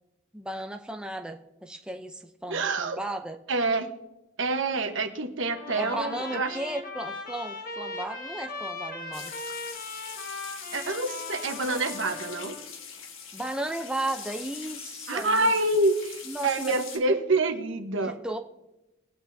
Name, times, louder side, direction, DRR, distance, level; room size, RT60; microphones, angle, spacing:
voice 1, 0.3-3.4 5.7-9.3 13.3-15.5 16.3-16.7 18.0-18.4, right 1 dB, 5° right, 3 dB, 0.6 m, -35 dB
voice 2, 2.5-3.0 3.5-3.9 4.4-6.6 10.7-12.6 15.1-18.2, right 2 dB, 70° right, 6 dB, 1.2 m, -27 dB
Trumpet, 5.5-12.7, left 3 dB, 45° left, 1.3 m, -39 dB
sound 1, 9.1-17.0, left 6 dB, 75° left, 1.5 m, -42 dB
21.0 x 8.8 x 2.7 m, 0.96 s
head